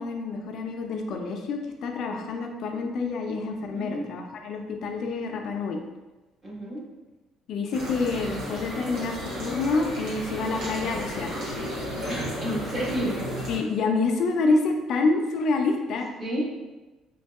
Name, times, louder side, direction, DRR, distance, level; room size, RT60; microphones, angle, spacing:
voice 1, 0.0-5.8 7.5-11.3 13.5-16.1, left 3 dB, 55° left, 3 dB, 0.3 m, -27 dB
voice 2, 3.7-4.1 6.4-6.8 12.1-13.1 16.2-16.4, equal, 20° right, -6 dB, 0.9 m, -30 dB
sound 1, 7.7-13.6, equal, 75° right, 1.0 m, -33 dB
2.8 x 2.6 x 2.4 m, 1.2 s
cardioid pair, 145°, 0 cm